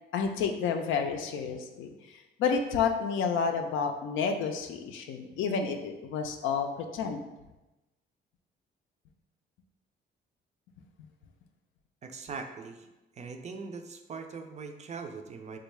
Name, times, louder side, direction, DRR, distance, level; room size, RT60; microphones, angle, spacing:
voice 1, 0.1-7.2, left 6 dB, 80° left, 5 dB, 0.4 m, -30 dB
voice 2, 12.0-12.9 13.1-15.6, right 4 dB, 35° right, 6 dB, 0.4 m, -41 dB
3.6 x 2.2 x 3.1 m, 1.0 s
cardioid pair, 90°, 20 cm